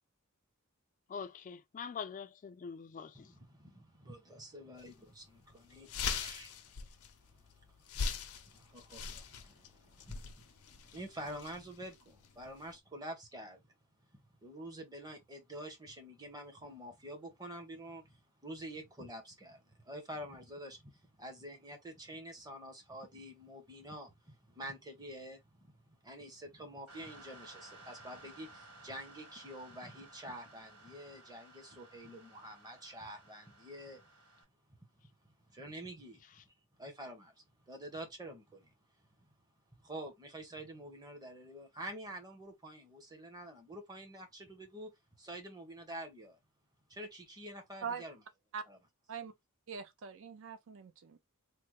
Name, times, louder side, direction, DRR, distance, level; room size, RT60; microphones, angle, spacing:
voice 1, 1.1-3.3, left 6 dB, 35° left, 0.3 m, -44 dB
voice 2, 3.1-6.8 7.3-13.6 14.4-34.1 35.5-37.3 37.7-38.7 39.2-39.3 39.8-44.9 45.2-46.4 46.9-48.2 48.7-48.8, right 1 dB, 20° right, 0.9 m, -48 dB
sound 1, 4.8-4.9 5.3-5.4 5.7-12.7, left 5 dB, 90° left, 0.6 m, -41 dB
sound 2, 26.9-34.4, right 2 dB, 90° right, 1.4 m, -57 dB
voice 3, 49.7-51.2, right 6 dB, 65° right, 0.5 m, -42 dB
3.2 x 2.1 x 3.0 m
head